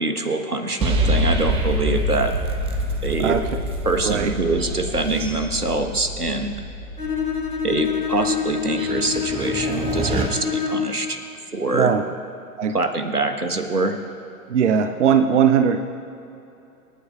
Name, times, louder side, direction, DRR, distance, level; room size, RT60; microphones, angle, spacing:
voice 1, 0.0-2.3 3.0-3.4 3.8-6.6 7.6-11.2 11.5-11.9 12.7-14.0, right 2 dB, 90° right, 6 dB, 1.4 m, -24 dB
sound 1, 0.8-10.2, right 1 dB, 15° right, 0.8 m, -26 dB
Bowed string instrument, 7.0-11.1, left 6 dB, 80° left, 1.6 m, -26 dB
voice 2, 11.7-12.0 12.6-12.7 14.5-15.8, right 7 dB, 55° right, 8 dB, 0.7 m, -19 dB
28.0 x 9.4 x 2.4 m, 2.8 s
figure-of-eight pair, 115°, 44 cm